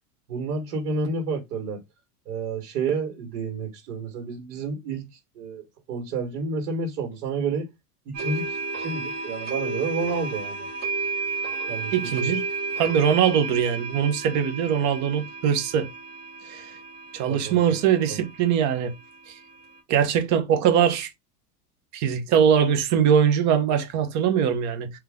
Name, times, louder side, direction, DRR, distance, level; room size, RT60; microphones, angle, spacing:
voice 1, 0.3-1.8 2.3-7.7 8.1-10.7 11.7-12.4 17.3-17.8 18.1-18.2, right 4 dB, 75° right, 2.0 m, -30 dB
sound 1, 8.1-19.8, right 4 dB, 20° right, 1.5 m, -33 dB
voice 2, 11.9-12.4 12.8-15.9 16.5-16.7 17.1-18.9 19.9-21.1 21.9-24.9, right 8 dB, 35° right, 1.0 m, -22 dB
3.6 x 3.1 x 3.6 m
supercardioid pair, 155°, 47 cm